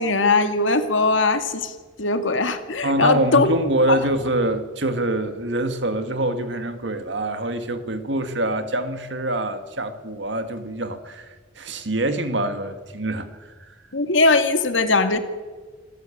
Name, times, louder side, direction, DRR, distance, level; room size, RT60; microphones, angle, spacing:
voice 1, 0.0-1.7 2.0-3.5 3.9-4.0 13.9-15.2, left 3 dB, 85° left, 8 dB, 2.2 m, -20 dB
voice 2, 2.8-11.3 11.6-13.3, right 1 dB, 65° right, 9 dB, 2.0 m, -25 dB
26.5 x 14.5 x 8.7 m, 1.4 s
head